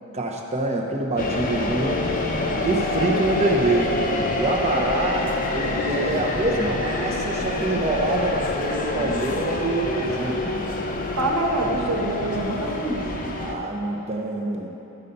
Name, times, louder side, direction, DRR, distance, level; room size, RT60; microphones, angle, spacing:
voice 1, 0.1-2.1 2.6-4.0 4.4-10.5 13.4-14.7, right 2 dB, 30° right, 1 dB, 0.9 m, -25 dB
sound 1, 1.2-13.5, left 2 dB, 40° left, 0.8 m, -26 dB
voice 2, 11.1-13.2, right 1 dB, 65° right, -1 dB, 1.5 m, -25 dB
13.0 x 5.6 x 5.4 m, 3.0 s
head